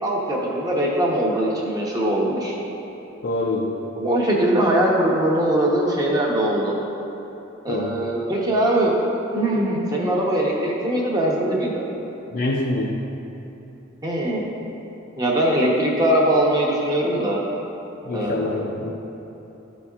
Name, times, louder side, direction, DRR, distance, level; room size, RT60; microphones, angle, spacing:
voice 1, 0.0-2.6 4.0-6.7 7.6-8.9 9.3-11.8 14.0-14.4 15.2-17.4 18.1-18.9, right 1 dB, 20° right, -4 dB, 0.8 m, -21 dB
voice 2, 3.2-3.7 7.7-8.0 12.3-13.0 18.0-18.9, left 2 dB, 50° left, -1 dB, 0.4 m, -25 dB
12.0 x 4.2 x 2.4 m, 3.0 s
head